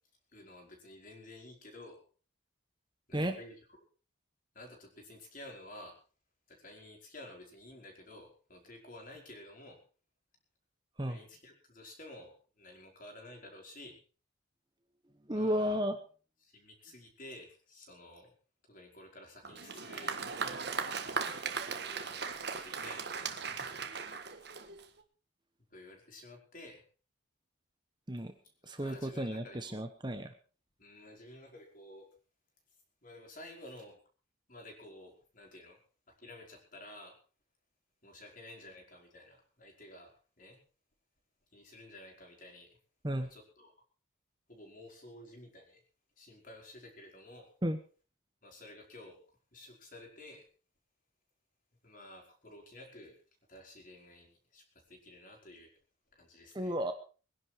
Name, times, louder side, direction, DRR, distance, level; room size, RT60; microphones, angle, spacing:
voice 1, 0.3-2.0 3.1-3.6 4.5-5.9 6.5-9.8 11.1-14.0 15.3-15.8 16.4-18.3 18.7-20.2 21.6-23.7 25.7-26.8 28.6-29.9 30.8-32.1 33.0-34.0 34.5-35.8 36.1-37.1 38.0-40.1 40.4-40.6 41.5-42.7 43.2-43.7 44.5-45.8 46.2-47.5 48.4-49.2 49.5-50.4 51.8-53.1 53.5-55.7 56.1-56.7, left 1 dB, 40° left, 2 dB, 4.9 m, -52 dB
voice 2, 15.2-16.0 28.1-28.3 28.6-30.3 43.0-43.3 47.6-47.8 56.5-56.9, equal, 20° right, 7 dB, 1.2 m, -33 dB
Applause, 19.4-25.0, right 5 dB, 50° right, 1.6 m, -38 dB
22.0 x 11.0 x 4.7 m, 0.38 s
head